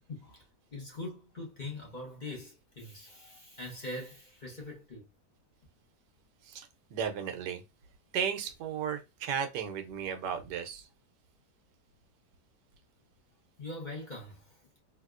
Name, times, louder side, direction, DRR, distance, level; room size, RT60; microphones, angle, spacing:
voice 1, 0.1-0.4 0.7-5.1 13.6-14.6, left 2 dB, 30° left, 1.1 m, -42 dB
voice 2, 6.4-7.6 8.1-10.9, right 7 dB, 80° right, 1.3 m, -35 dB
3.5 x 2.7 x 2.4 m
omnidirectional pair, 1.8 m